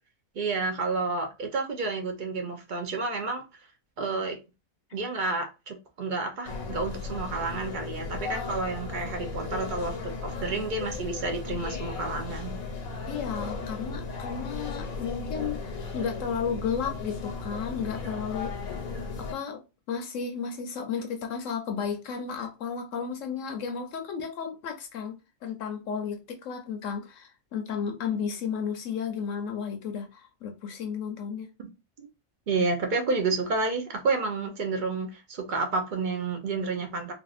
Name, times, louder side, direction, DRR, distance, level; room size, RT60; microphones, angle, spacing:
voice 1, 0.4-3.4 4.0-4.4 4.9-12.6 31.6-31.7 32.0-32.1 32.5-37.1, right 3 dB, 50° right, 0.6 m, -30 dB
sound 1, 6.4-19.3, left 4 dB, 85° left, 1.3 m, -36 dB
voice 2, 13.1-18.5 19.2-31.5, left 6 dB, 70° left, 0.9 m, -33 dB
3.4 x 2.4 x 2.4 m
omnidirectional pair, 1.4 m